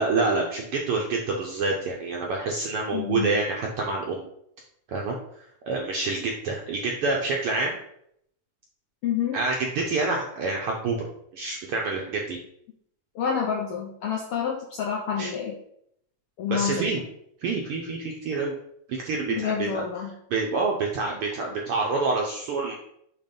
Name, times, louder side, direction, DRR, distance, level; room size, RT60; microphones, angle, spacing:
voice 1, 0.0-4.3 4.9-5.1 5.7-7.8 9.3-11.0 11.3-12.4 15.2-15.3 16.5-17.0 17.4-18.5 18.9-19.8 20.3-22.7, right 3 dB, 75° right, 0 dB, 1.3 m, -27 dB
voice 2, 2.9-3.4 9.0-9.4 13.1-15.6 16.4-16.8 19.3-20.1, left 7 dB, 75° left, 0 dB, 1.3 m, -28 dB
6.5 x 3.0 x 5.2 m, 0.72 s
omnidirectional pair, 3.3 m